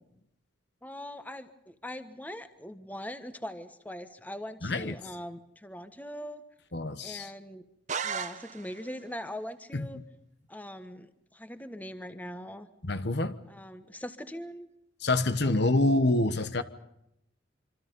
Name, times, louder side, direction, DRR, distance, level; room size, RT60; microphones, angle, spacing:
voice 1, 0.8-6.4 7.0-7.6 8.0-10.0 10.5-12.7 13.5-14.7 15.4-15.5, equal, 10° left, 1.3 m, -41 dB
voice 2, 4.6-5.0 6.7-7.3 9.7-10.0 12.8-13.4 15.0-16.6, left 2 dB, 60° left, 1.2 m, -27 dB
sound 1, 7.9-9.0, right 6 dB, 40° right, 1.0 m, -35 dB
26.0 x 26.0 x 5.4 m
head